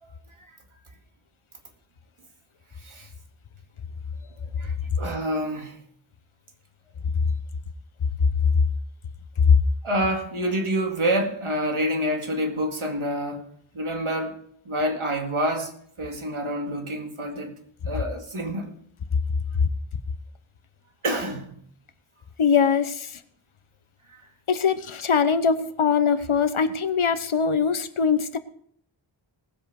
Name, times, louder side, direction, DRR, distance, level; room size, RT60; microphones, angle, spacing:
voice 1, 2.8-3.1 4.6-5.8 9.8-13.4 13.7-14.4 14.7-17.5 17.9-18.8 21.0-21.6, equal, 90° right, 2.2 m, -27 dB
voice 2, 22.4-23.2 24.5-28.4, left 6 dB, 85° left, 1.0 m, -21 dB
18.5 x 8.0 x 4.8 m
wide cardioid pair, 45°, 48 cm